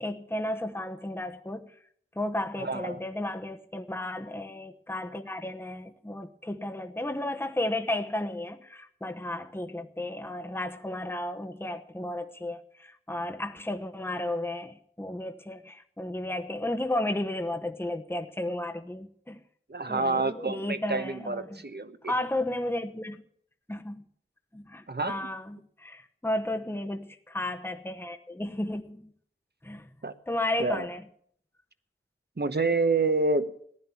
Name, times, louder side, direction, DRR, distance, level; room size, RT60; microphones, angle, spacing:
voice 1, 0.0-1.7 2.2-19.4 19.9-21.6 22.1-23.2 23.7-24.0 24.5-29.1 29.6-29.9 30.3-31.0, left 1 dB, 10° left, 1.0 m, -33 dB
voice 2, 2.6-3.0 19.7-22.1 24.9-25.3 30.0-30.1 30.6-30.9 32.4-33.5, right 3 dB, 50° right, 1.1 m, -28 dB
15.0 x 10.5 x 7.1 m
wide cardioid pair, 40°, 21 cm